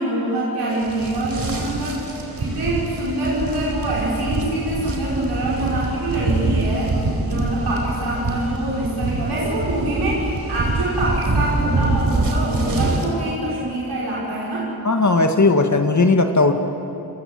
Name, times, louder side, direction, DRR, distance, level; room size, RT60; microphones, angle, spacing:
voice 1, 0.0-7.0 7.2-14.7, right 1 dB, 85° right, -6 dB, 5.7 m, -25 dB
sound 1, 0.7-13.1, right 3 dB, 60° right, 4.3 m, -25 dB
voice 2, 14.8-16.5, left 3 dB, 45° left, 5 dB, 2.1 m, -16 dB
30.0 x 22.5 x 7.8 m, 2.8 s
cardioid pair, 55°, 39 cm